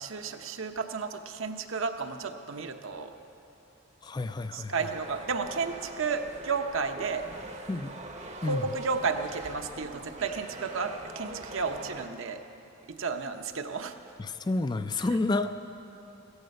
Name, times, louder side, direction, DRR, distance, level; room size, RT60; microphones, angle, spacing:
voice 1, 0.0-3.1 4.5-7.3 8.4-12.4 12.9-13.9, right 5 dB, 70° right, 6 dB, 0.8 m, -32 dB
voice 2, 4.0-4.7 7.7-7.9 8.4-8.6 14.2-15.5, left 2 dB, 20° left, 10 dB, 0.3 m, -29 dB
sound 1, 4.7-12.1, right 2 dB, 30° right, 0.7 m, -43 dB
16.0 x 15.5 x 5.3 m, 2.9 s
head